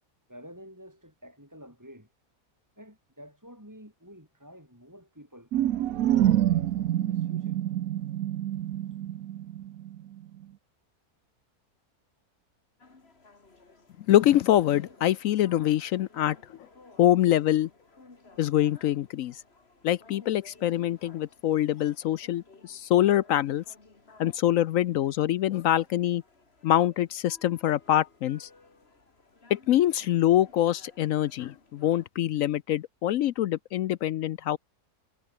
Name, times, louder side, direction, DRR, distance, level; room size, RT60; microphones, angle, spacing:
voice 1, 0.3-2.1 2.8-5.5 5.9-7.6, equal, 10° right, 7.8 m, -49 dB
sound 1, 5.5-10.1, right 12 dB, 70° right, 1.1 m, -27 dB
sound 2, 12.8-32.1, left 3 dB, 40° left, 2.8 m, -57 dB
voice 2, 14.1-16.4 17.0-17.7 18.4-19.4 19.8-23.6 24.2-26.2 26.6-28.5 29.5-34.6, left 12 dB, 70° left, 0.9 m, -24 dB
omnidirectional pair, 1.7 m